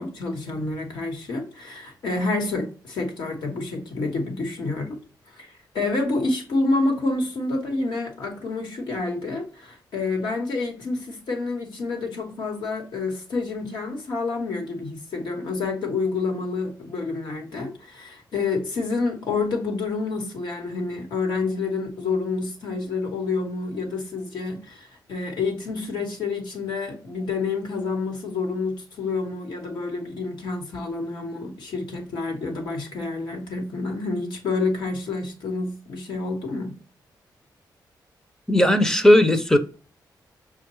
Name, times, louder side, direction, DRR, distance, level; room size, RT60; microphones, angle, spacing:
voice 1, 0.0-5.0 5.3-36.7, left 3 dB, 85° left, 1.2 m, -28 dB
voice 2, 38.5-39.6, left 1 dB, 5° left, 0.4 m, -16 dB
5.7 x 2.3 x 3.0 m
wide cardioid pair, 135°, 7 cm